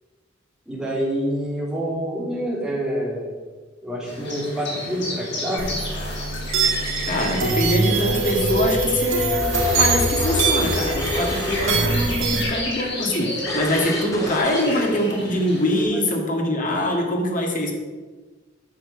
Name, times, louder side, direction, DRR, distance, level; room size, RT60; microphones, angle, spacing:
voice 1, 0.7-3.3 3.8-5.7 15.9-16.0, equal, 5° right, -6 dB, 3.3 m, -27 dB
sound 1, 4.1-15.8, left 1 dB, 60° left, 3.9 m, -32 dB
sound 2, 5.6-12.4, right 3 dB, 70° right, 2.1 m, -23 dB
voice 2, 7.0-17.7, left 1 dB, 40° left, 1 dB, 2.0 m, -23 dB
sound 3, 8.4-12.1 12.3-12.5 13.0-13.1 13.5-14.9, left 1 dB, 15° left, 2.1 m, -30 dB
10.5 x 6.5 x 6.4 m, 1.3 s
head